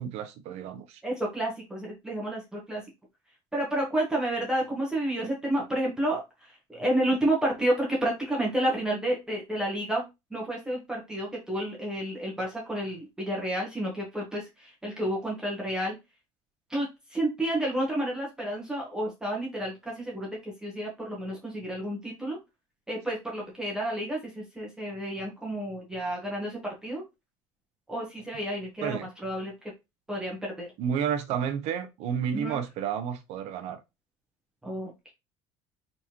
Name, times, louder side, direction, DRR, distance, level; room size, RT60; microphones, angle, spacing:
voice 1, 0.0-1.0 28.8-29.1 30.8-33.8, right 8 dB, 60° right, 0.8 m, -31 dB
voice 2, 1.0-2.8 3.5-6.2 6.7-10.0 10.3-15.9 16.7-22.4 22.9-27.0 27.9-29.5 30.1-30.7 32.3-32.6 34.6-35.1, right 1 dB, 5° right, 1.3 m, -30 dB
4.1 x 3.5 x 2.9 m
cardioid pair, 160°, 13 cm